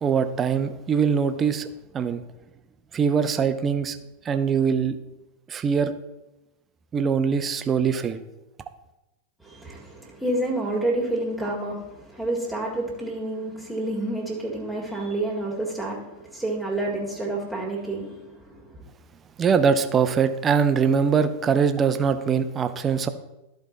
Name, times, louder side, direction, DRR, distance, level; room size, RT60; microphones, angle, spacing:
voice 1, 0.0-1.7 1.9-2.2 2.9-4.0 4.2-5.0 5.5-5.9 6.9-8.2 19.4-23.1, right 6 dB, 25° right, 10 dB, 0.6 m, -22 dB
voice 2, 9.4-18.8, right 2 dB, 5° right, -3 dB, 1.8 m, -29 dB
13.0 x 4.6 x 4.0 m, 0.98 s
figure-of-eight pair, 90°, 0 cm